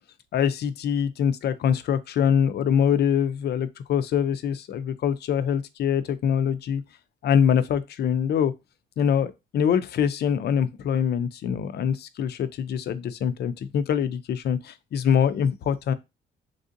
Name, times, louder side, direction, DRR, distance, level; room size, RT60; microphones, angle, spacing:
voice 1, 0.3-6.8 7.2-8.5 9.0-15.9, left 8 dB, 55° left, 0.4 m, -24 dB
3.3 x 2.5 x 2.5 m
cardioid pair, 90°, 20 cm